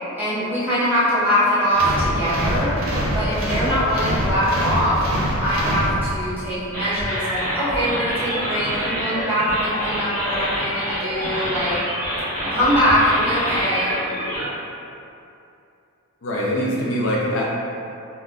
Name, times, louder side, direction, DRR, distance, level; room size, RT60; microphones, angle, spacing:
voice 1, 0.1-2.8 3.1-5.0 5.4-11.8 12.4-13.9, equal, 10° right, -12 dB, 0.7 m, -22 dB
sound 1, 1.7-6.4, equal, 65° right, 0.6 m, -24 dB
sound 2, 6.7-14.5, equal, 10° left, 1.0 m, -26 dB
voice 2, 16.2-17.5, equal, 55° left, -4 dB, 0.4 m, -23 dB
2.4 x 2.1 x 3.4 m, 2.7 s
head